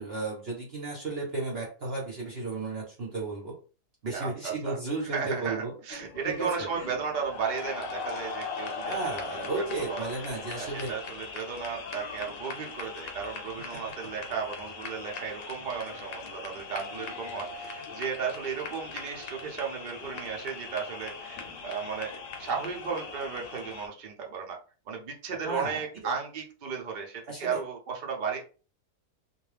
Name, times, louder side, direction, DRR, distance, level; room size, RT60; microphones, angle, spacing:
voice 1, 0.0-3.5 4.0-5.7 6.2-6.9 8.8-10.9 25.4-25.8 27.3-27.6, right 3 dB, 45° right, -3 dB, 0.9 m, -34 dB
voice 2, 4.1-4.8 5.0-10.1 10.6-24.6 24.9-28.4, right 6 dB, 75° right, 0 dB, 0.4 m, -35 dB
sound 1, 5.9-23.9, left 4 dB, 65° left, 0.9 m, -40 dB
2.6 x 2.2 x 3.2 m, 0.36 s
omnidirectional pair, 1.7 m